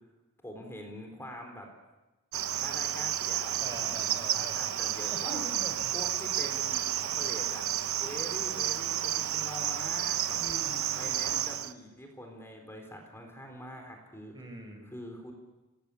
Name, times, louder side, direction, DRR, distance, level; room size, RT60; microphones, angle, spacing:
voice 1, 0.4-1.7 2.6-5.4 5.9-7.6 8.0-10.4 11.0-14.3 14.8-15.3, equal, 10° left, 3 dB, 4.0 m, -44 dB
Cricket, 2.3-11.7, right 11 dB, 70° right, 0.9 m, -31 dB
voice 2, 3.6-4.8 5.1-5.7 10.3-11.2 14.3-14.9, right 1 dB, 20° right, 5 dB, 4.5 m, -44 dB
26.0 x 19.5 x 8.5 m, 1.1 s
head